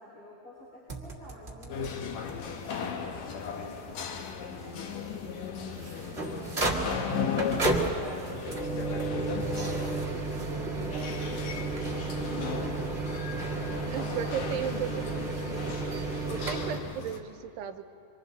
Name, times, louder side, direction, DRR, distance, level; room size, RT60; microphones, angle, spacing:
voice 1, 0.0-5.6 5.9-10.0 10.4-12.9, left 1 dB, 55° left, -9 dB, 6.6 m, -51 dB
sound 1, 0.9-1.9 2.3-2.4 2.6-2.7 3.4-3.5 5.5-16.8, right 3 dB, 60° right, 0.6 m, -33 dB
sound 2, 1.7-17.2, left 6 dB, 70° left, 1.7 m, -37 dB
voice 2, 13.9-15.0 16.3-17.9, right 9 dB, 85° right, 7 dB, 2.9 m, -35 dB
26.0 x 25.0 x 4.1 m, 2.7 s
omnidirectional pair, 4.7 m